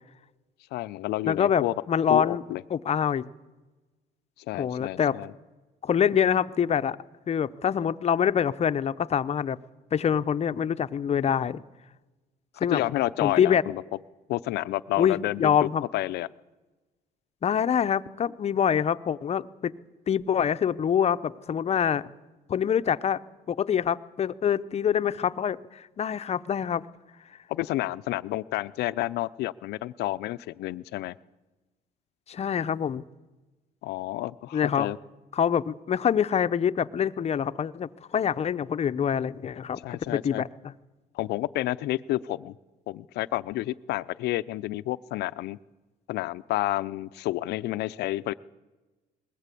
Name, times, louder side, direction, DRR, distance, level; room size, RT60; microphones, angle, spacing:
voice 1, 0.7-1.7 2.1-2.6 4.5-5.3 12.6-13.8 14.3-15.6 15.9-16.3 27.5-31.1 33.8-35.0 39.8-40.4 41.1-42.5 42.9-45.6 46.1-48.3, left 16 dB, 75° left, 14 dB, 0.6 m, -30 dB
voice 2, 1.3-2.4 2.7-3.2 4.6-5.2 5.8-7.0 7.3-9.6 9.9-11.6 12.6-12.8 13.2-13.6 15.0-15.8 17.4-19.7 20.1-22.0 22.5-23.2 23.5-26.8 32.3-33.0 34.5-34.9 35.3-40.7, left 8 dB, 40° left, 12 dB, 0.8 m, -25 dB
21.0 x 19.0 x 8.4 m, 1.2 s
cardioid pair, 110°, 17 cm